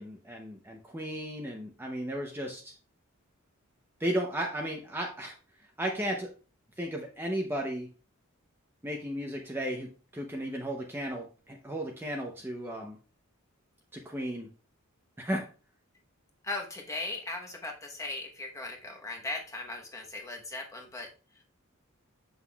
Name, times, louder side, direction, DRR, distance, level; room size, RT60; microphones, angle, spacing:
voice 1, 0.0-2.7 4.0-5.4 5.8-6.3 6.8-7.9 8.8-13.0 13.9-14.5 15.2-15.5, right 1 dB, 10° right, 1 dB, 0.6 m, -34 dB
voice 2, 16.4-21.1 21.3-21.4, left 2 dB, 15° left, 1 dB, 0.9 m, -38 dB
7.9 x 5.8 x 2.3 m, 0.36 s
head